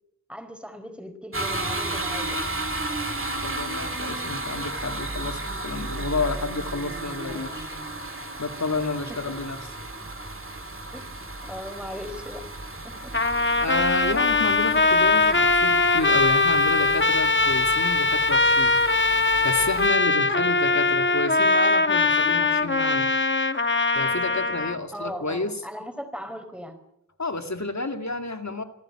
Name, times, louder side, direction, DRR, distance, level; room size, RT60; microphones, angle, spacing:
voice 1, 0.3-2.4 7.2-7.6 9.1-9.3 10.9-12.4 12.8-13.1 24.9-26.8, equal, 5° right, 7 dB, 4.4 m, -38 dB
sound 1, 1.3-19.9, right 2 dB, 40° right, 3.0 m, -34 dB
voice 2, 3.4-7.7 8.4-9.6 13.6-23.1 24.0-25.5 27.2-28.6, left 3 dB, 60° left, 7 dB, 2.3 m, -30 dB
Trumpet, 13.1-24.8, left 3 dB, 35° left, 1.3 m, -21 dB
27.0 x 15.0 x 8.7 m, 0.80 s
wide cardioid pair, 45°, 31 cm